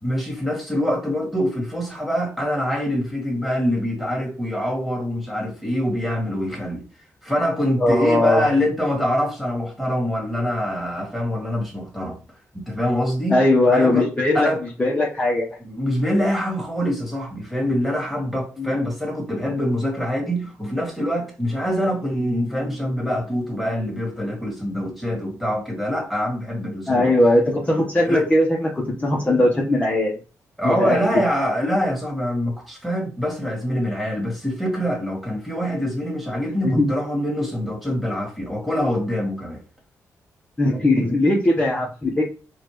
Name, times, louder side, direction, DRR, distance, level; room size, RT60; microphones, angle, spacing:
voice 1, 0.0-6.8 7.2-12.2 12.5-13.4 13.7-14.6 15.6-27.1 28.0-28.3 30.6-39.6, equal, ahead, 2.2 m, -24 dB
voice 2, 7.8-8.5 13.3-14.5 14.8-15.4 18.6-18.7 26.9-30.1 30.6-31.0 36.6-36.9 40.6-42.2, left 1 dB, 20° left, 1.1 m, -19 dB
4.3 x 2.5 x 3.1 m
supercardioid pair, 60°, 6 cm